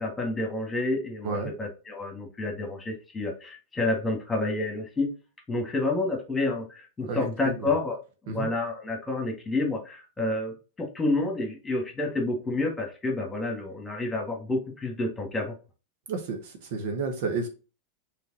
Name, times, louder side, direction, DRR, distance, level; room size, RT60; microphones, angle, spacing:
voice 1, 0.0-5.1 5.5-15.5, left 2 dB, 10° left, 2 dB, 1.7 m, -29 dB
voice 2, 7.1-7.7 8.3-8.5 16.1-17.5, right 4 dB, 50° right, 5 dB, 1.0 m, -31 dB
5.7 x 3.4 x 2.7 m, 0.32 s
figure-of-eight pair, 90°, 0 cm